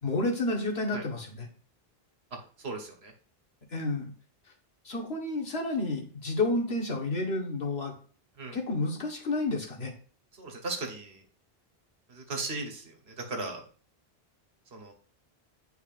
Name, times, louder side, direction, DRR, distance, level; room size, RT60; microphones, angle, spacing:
voice 1, 0.0-1.5 3.7-4.1 4.8-7.9 8.5-9.9, left 2 dB, 80° left, 1 dB, 1.6 m, -30 dB
voice 2, 2.6-3.1 8.4-8.6 10.4-11.2 12.1-13.6 14.7-14.9, right 3 dB, 80° right, 2 dB, 1.5 m, -37 dB
8.8 x 4.5 x 2.5 m, 0.42 s
omnidirectional pair, 1.0 m